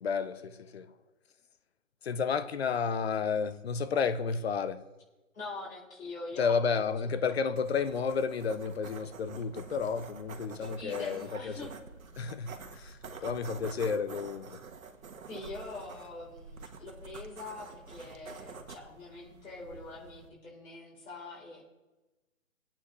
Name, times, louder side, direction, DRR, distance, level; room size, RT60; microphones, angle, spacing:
voice 1, 0.0-0.9 2.0-4.8 6.4-11.6 12.2-14.5, left 5 dB, 50° left, 0.8 m, -31 dB
voice 2, 5.3-6.6 7.3-7.4 10.6-11.9 13.1-13.3 15.3-21.6, left 3 dB, 80° left, 4.1 m, -44 dB
sound 1, 7.6-20.3, right 5 dB, 85° right, 1.5 m, -48 dB
20.5 x 8.8 x 3.2 m
hypercardioid pair, 170°, 40 cm